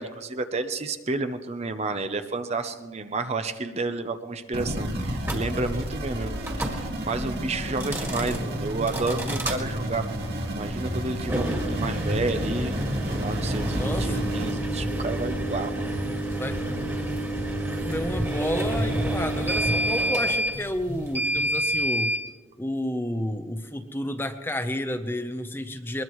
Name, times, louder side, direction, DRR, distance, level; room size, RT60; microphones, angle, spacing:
voice 1, 0.0-10.0 10.5-12.7 13.1-15.9, right 3 dB, 30° right, 8 dB, 0.7 m, -31 dB
sound 1, 4.5-14.5, equal, 50° right, 2.0 m, -31 dB
sound 2, 5.2-5.4 6.4-6.8 7.7-8.4 8.9-9.6 11.2-22.2, right 1 dB, 10° right, 1.9 m, -28 dB
voice 2, 13.7-14.3 16.4-16.6 17.8-22.1 22.6-26.0, left 1 dB, 10° left, 8 dB, 0.7 m, -31 dB
22.0 x 21.0 x 3.1 m, 1.3 s
head